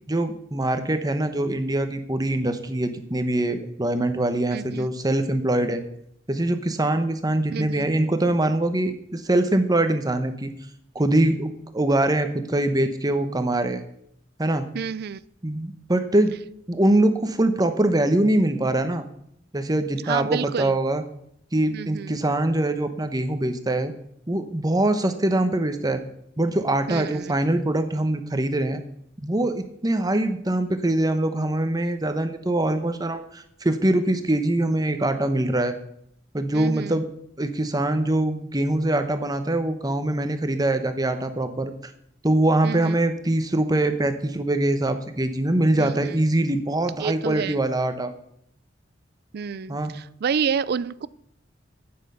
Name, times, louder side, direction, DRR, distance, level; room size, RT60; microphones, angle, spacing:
voice 1, 0.1-5.8 6.3-10.5 10.9-13.8 14.4-14.7 15.4-16.3 16.7-19.0 19.5-21.0 21.5-23.9 24.3-26.0 26.4-28.8 29.2-35.8 36.3-37.0 37.4-41.7 42.2-48.1 49.7-50.0, right 1 dB, 20° right, 8 dB, 1.0 m, -23 dB
voice 2, 4.5-4.9 7.5-7.9 14.7-15.2 20.1-20.8 21.7-22.2 26.9-27.4 36.5-37.0 42.6-43.0 45.8-46.1 47.0-47.6 49.3-51.1, right 6 dB, 55° right, 18 dB, 0.4 m, -29 dB
9.8 x 8.7 x 6.7 m, 0.72 s
head